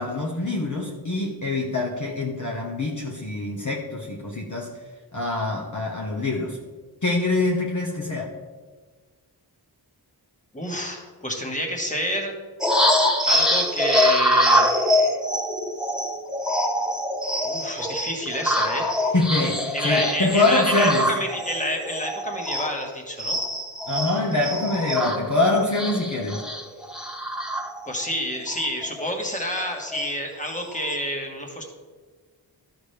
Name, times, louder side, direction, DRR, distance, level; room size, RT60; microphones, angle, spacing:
voice 1, 0.0-4.7 5.1-6.6 7.0-8.3 19.1-21.1 23.9-26.4, left 2 dB, 45° left, -1 dB, 1.0 m, -24 dB
voice 2, 10.5-12.3 13.3-14.7 17.4-18.9 19.7-23.4 27.8-31.6, equal, 20° left, 1 dB, 1.6 m, -29 dB
sound 1, 12.6-22.9 23.2-28.1 28.5-28.7 29.0-30.1 30.5-30.9, equal, ahead, 1.0 m, -24 dB
12.5 x 6.1 x 3.3 m, 1.4 s
wide cardioid pair, 70°, 41 cm